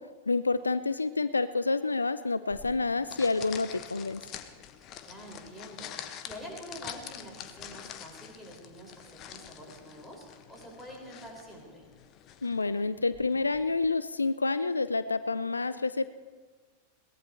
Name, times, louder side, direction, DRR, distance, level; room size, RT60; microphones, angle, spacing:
voice 1, 0.3-4.2 12.4-16.1, left 3 dB, 80° left, 14 dB, 0.5 m, -28 dB
sound 1, 2.5-13.9, left 10 dB, 35° left, 1.1 m, -46 dB
voice 2, 5.0-11.9, equal, ahead, -3 dB, 6.4 m, -46 dB
22.0 x 18.5 x 3.4 m, 1.5 s
figure-of-eight pair, 90°, 0 cm